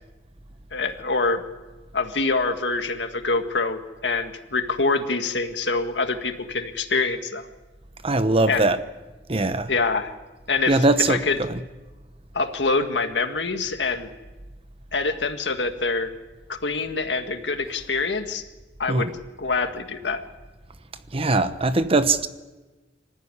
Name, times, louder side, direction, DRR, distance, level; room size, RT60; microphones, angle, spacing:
voice 1, 0.7-1.4 1.9-7.5 8.5-8.7 9.7-10.1 10.5-11.4 12.3-14.1 14.9-16.1 16.5-18.4 18.8-19.1 19.4-20.2, left 3 dB, 80° left, 1.9 m, -25 dB
voice 2, 8.0-8.8 9.3-9.7 10.7-11.6 18.9-19.1 21.1-22.3, right 2 dB, 35° right, 1.0 m, -21 dB
25.5 x 14.5 x 9.9 m
head